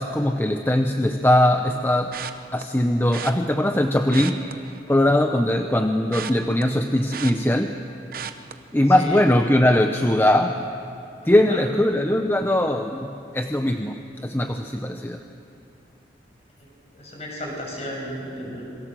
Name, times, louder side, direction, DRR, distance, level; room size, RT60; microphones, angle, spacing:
voice 1, 0.0-2.2 2.5-4.6 4.9-7.8 8.7-10.6 11.2-13.1 13.3-15.2, left 1 dB, 10° left, 6 dB, 0.7 m, -20 dB
sound 1, 2.1-2.6 3.1-3.3 4.0-5.3 5.6-7.8 8.1-8.5 9.0-9.3 9.5-9.6, right 7 dB, 55° right, 1.0 m, -35 dB
voice 2, 11.2-11.7 16.9-18.6, equal, 35° left, -2 dB, 7.2 m, -34 dB
27.5 x 22.5 x 7.7 m, 2.7 s
head